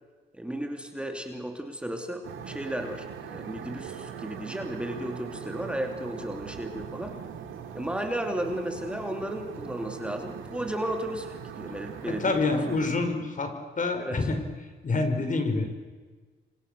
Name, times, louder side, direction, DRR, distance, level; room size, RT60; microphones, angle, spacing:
voice 1, 0.3-7.2 7.7-12.4 14.0-14.3, right 1 dB, 5° right, 3 dB, 2.9 m, -34 dB
sound 1, 2.2-12.9, right 7 dB, 80° right, 3.2 m, -41 dB
voice 2, 12.0-14.4 14.8-15.8, left 3 dB, 40° left, 6 dB, 5.4 m, -27 dB
29.5 x 25.0 x 6.9 m, 1.4 s
cardioid pair, 90°, 20 cm